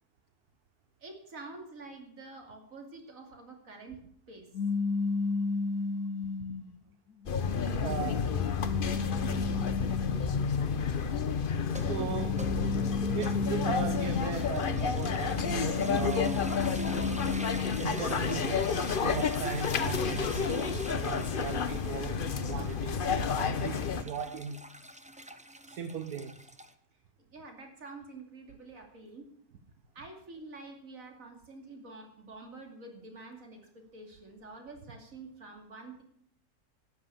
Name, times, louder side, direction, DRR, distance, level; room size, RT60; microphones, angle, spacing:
voice 1, 1.0-4.0 4.3-4.5 27.3-29.3 29.9-36.0, right 3 dB, 60° right, 3.1 m, -47 dB
sound 1, 4.5-6.7 7.4-10.5 11.6-14.6 15.0-18.0, left 4 dB, 85° left, 1.5 m, -34 dB
sound 2, 7.3-24.0, left 6 dB, 45° left, 0.8 m, -31 dB
voice 2, 7.8-8.4 11.8-12.5 13.1-16.6 17.8-18.7 19.0-22.2 22.5-24.6 25.7-26.5, right 7 dB, 75° right, 1.5 m, -38 dB
sound 3, 11.6-26.7, right 1 dB, 10° right, 0.5 m, -45 dB
13.0 x 9.9 x 6.9 m
omnidirectional pair, 1.6 m